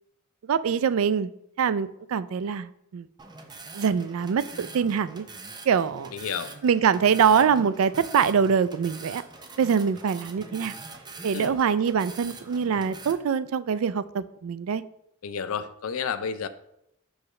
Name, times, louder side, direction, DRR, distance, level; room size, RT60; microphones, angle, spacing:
voice 1, 0.5-1.3 1.6-3.1 3.7-5.2 5.7-6.1 6.6-9.2 9.6-10.7 11.2-14.8, right 7 dB, 75° right, 15 dB, 0.4 m, -24 dB
sound 1, 3.2-13.1, right 3 dB, 20° right, 0.5 m, -43 dB
voice 2, 6.1-6.5 11.3-11.6 15.2-16.5, left 6 dB, 75° left, 12 dB, 0.5 m, -31 dB
6.3 x 4.8 x 3.2 m, 0.76 s
head